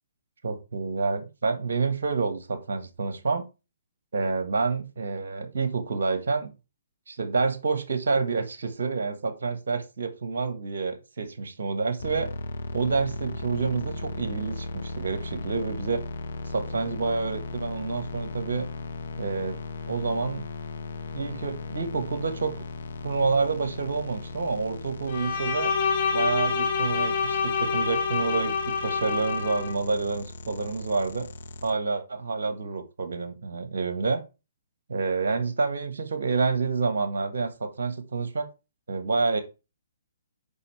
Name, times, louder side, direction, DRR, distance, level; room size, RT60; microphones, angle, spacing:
voice 1, 0.4-3.4 4.1-6.5 7.1-12.3 12.7-16.0 16.5-18.7 19.2-19.6 19.9-20.5 21.1-22.5 23.0-25.7 26.1-31.3 31.6-34.2 34.9-38.5 38.9-39.4, right 4 dB, 60° right, 9 dB, 1.7 m, -28 dB
sound 1, 12.0-31.7, left 2 dB, 65° left, 1.5 m, -37 dB
Bowed string instrument, 25.1-29.7, left 5 dB, 45° left, 3.5 m, -27 dB
9.6 x 5.5 x 3.4 m, 0.28 s
figure-of-eight pair, 130°, 0 cm